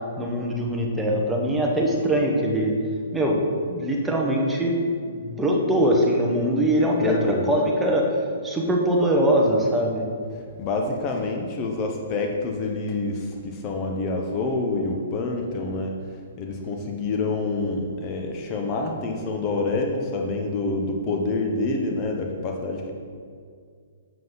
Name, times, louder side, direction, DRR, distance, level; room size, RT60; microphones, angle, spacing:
voice 1, 0.2-2.7 3.1-3.4 3.7-4.7 5.0-8.1 8.4-10.0, right 1 dB, 5° right, -1 dB, 1.1 m, -22 dB
voice 2, 7.0-7.5 10.6-15.9 16.4-22.9, left 3 dB, 30° left, 2 dB, 0.9 m, -27 dB
7.6 x 7.6 x 4.0 m, 2.2 s
hypercardioid pair, 145°, 0 cm